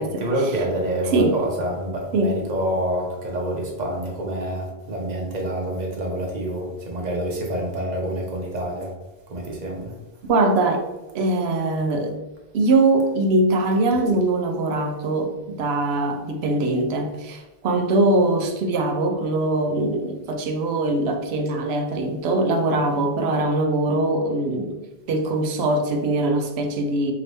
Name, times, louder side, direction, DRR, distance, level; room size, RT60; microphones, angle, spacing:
voice 1, 0.0-8.9 9.3-9.9, right 1 dB, 45° right, -1 dB, 1.0 m, -27 dB
voice 2, 10.3-10.8 11.1-12.2 12.5-24.8 25.1-27.1, right 2 dB, 75° right, 5 dB, 0.8 m, -22 dB
3.4 x 2.9 x 3.9 m, 1.0 s
omnidirectional pair, 1.1 m